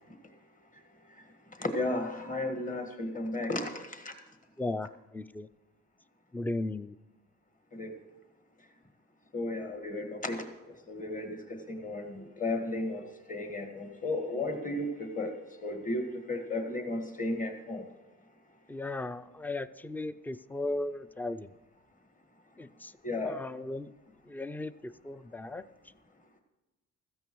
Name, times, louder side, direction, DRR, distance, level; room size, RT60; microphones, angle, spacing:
voice 1, 1.6-4.1 7.7-7.9 9.3-10.4 10.9-15.3 15.6-17.8 23.0-23.4, left 2 dB, 25° left, 5 dB, 1.6 m, -34 dB
voice 2, 4.6-5.5 6.3-7.0 18.7-21.5 22.6-22.9 23.2-23.9 24.3-25.6, left 2 dB, 5° left, 15 dB, 0.3 m, -36 dB
16.0 x 14.0 x 3.1 m, 1.1 s
cardioid pair, 90°, 30 cm